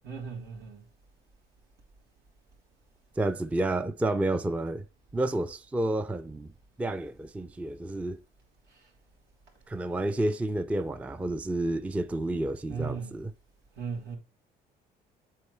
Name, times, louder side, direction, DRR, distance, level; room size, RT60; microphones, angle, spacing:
voice 1, 0.0-0.8 12.7-13.1 13.8-14.2, right 5 dB, 75° right, 3.2 m, -36 dB
voice 2, 3.2-4.8 5.1-6.5 6.8-8.2 9.7-13.3, right 1 dB, 10° right, 0.4 m, -30 dB
8.4 x 3.8 x 3.3 m
cardioid pair, 110°, 17 cm